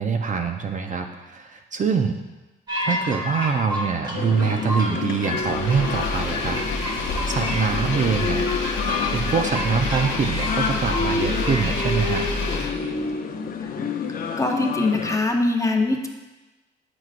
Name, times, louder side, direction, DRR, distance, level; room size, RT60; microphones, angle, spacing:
voice 1, 0.0-2.2 2.8-8.5 9.1-12.2, right 6 dB, 40° right, 5 dB, 0.5 m, -24 dB
sound 1, 2.7-12.6, left 1 dB, 20° right, 1.4 m, -31 dB
sound 2, 4.1-15.2, left 5 dB, 45° left, 0.6 m, -29 dB
Engine, 5.4-13.1, left 3 dB, 75° left, 1.0 m, -29 dB
voice 2, 14.4-16.1, left 2 dB, 15° left, 2 dB, 0.7 m, -22 dB
7.8 x 6.0 x 2.5 m, 1.1 s
cardioid pair, 90°, 20 cm